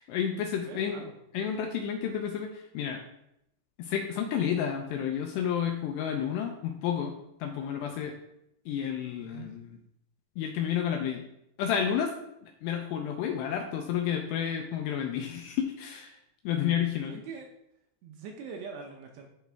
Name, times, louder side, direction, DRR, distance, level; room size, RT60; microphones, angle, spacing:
voice 1, 0.0-1.1 1.3-3.0 3.8-8.1 8.7-9.7 10.4-11.2 11.6-12.1 12.4-16.2 16.4-17.2, left 8 dB, 80° left, 3 dB, 2.5 m, -31 dB
voice 2, 0.7-1.2 9.3-9.5 17.1-17.5 18.0-19.3, right 5 dB, 75° right, 2 dB, 2.6 m, -43 dB
12.0 x 5.2 x 3.4 m, 0.82 s
omnidirectional pair, 5.5 m